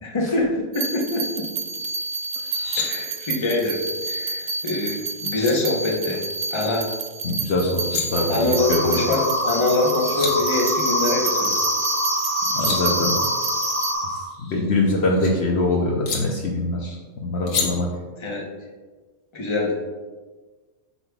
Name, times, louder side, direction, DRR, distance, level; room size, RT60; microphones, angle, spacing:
voice 1, 0.0-1.4 2.8-3.8 4.1-6.2 6.5-6.9 8.3-11.6 18.2-18.4 19.3-19.7, left 2 dB, 25° left, -2 dB, 0.9 m, -24 dB
sound 1, 0.7-13.9, right 4 dB, 65° right, 0.4 m, -29 dB
sound 2, 2.4-2.9 4.9-5.0 5.3-5.5 7.6-8.0 9.7-9.8 10.0-10.3 12.3-12.8 14.3-15.3 16.0-16.2 17.5-17.7, left 5 dB, 80° left, 1.4 m, -29 dB
voice 2, 7.2-7.8 8.1-9.0 12.5-13.2 14.1-14.2 14.5-17.0 17.2-17.9, left 2 dB, 60° left, -1 dB, 0.9 m, -23 dB
sound 3, 8.6-14.2, equal, 10° right, 1.9 m, -25 dB
8.1 x 5.4 x 2.3 m, 1.3 s
omnidirectional pair, 1.4 m